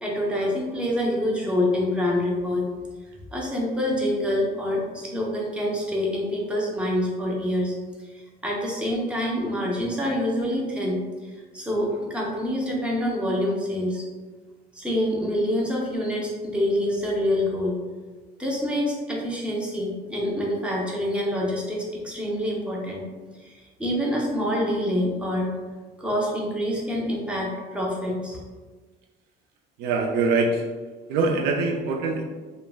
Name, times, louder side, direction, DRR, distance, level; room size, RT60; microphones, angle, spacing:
voice 1, 0.0-2.6 3.3-7.8 8.4-11.0 11.5-14.0 14.8-17.8 18.4-23.0 23.4-25.5 26.0-28.4, left 1 dB, 5° right, -3 dB, 0.4 m, -26 dB
voice 2, 29.8-30.6 31.1-32.2, right 3 dB, 85° right, 1 dB, 0.4 m, -23 dB
3.3 x 2.0 x 2.3 m, 1.3 s
cardioid pair, 165°, 17 cm